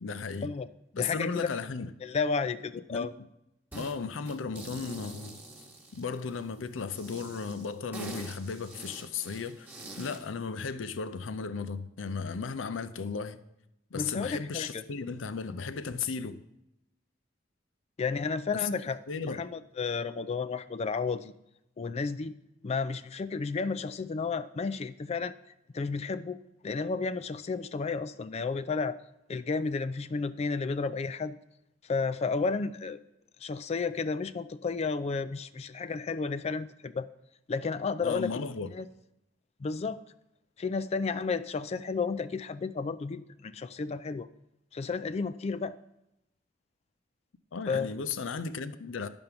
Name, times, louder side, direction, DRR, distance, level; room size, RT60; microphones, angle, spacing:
voice 1, 0.0-0.5 1.0-1.9 2.9-3.1 3.7-5.4 5.9-9.7 10.0-13.4 13.9-16.4 19.1-19.4 38.0-38.7 47.5-49.1, left 5 dB, 85° left, 0.5 m, -35 dB
voice 2, 0.9-1.5 2.0-3.1 13.9-14.8 18.0-19.0 19.3-21.3 21.8-22.3 22.6-25.3 25.7-26.4 26.6-29.0 29.3-31.4 31.8-33.0 33.4-37.1 37.5-38.4 38.7-38.9 39.6-40.0 40.6-44.3 44.7-45.8 47.7-47.9, left 4 dB, 35° left, 0.3 m, -32 dB
sound 1, 3.7-4.0 4.3-6.4 6.9-10.3, right 2 dB, 10° right, 1.3 m, -45 dB
11.0 x 5.2 x 5.8 m
head